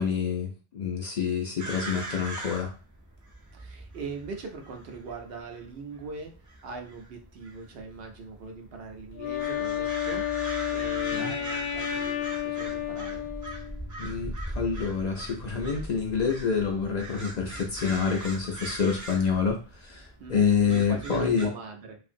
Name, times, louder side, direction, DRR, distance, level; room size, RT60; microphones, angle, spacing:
voice 1, 0.0-2.7 11.1-11.4 14.0-21.5, left 6 dB, 55° left, 1 dB, 0.5 m, -27 dB
sound 1, 1.6-21.5, right 1 dB, 30° right, 0.3 m, -41 dB
voice 2, 3.5-6.3 6.6-13.3 20.2-22.0, right 4 dB, 70° right, 2 dB, 0.8 m, -41 dB
Wind instrument woodwind instrument, 9.1-13.9, left 11 dB, 85° left, 0.8 m, -31 dB
2.8 x 2.5 x 2.5 m, 0.35 s
omnidirectional pair, 1.0 m